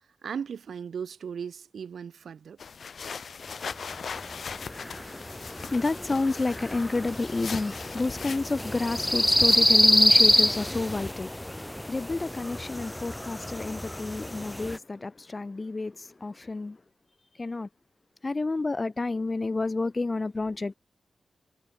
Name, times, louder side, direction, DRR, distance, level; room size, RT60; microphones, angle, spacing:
voice 1, 0.2-2.6, right 7 dB, 80° right, 0.5 m, -37 dB
sound 1, 2.6-9.6, left 6 dB, 60° left, 2.0 m, -40 dB
sound 2, 3.9-14.8, left 1 dB, 10° left, 0.4 m, -26 dB
voice 2, 4.6-16.8 17.4-17.7 18.2-20.7, left 3 dB, 25° left, 1.2 m, -30 dB
wide cardioid pair, 140°, 0 cm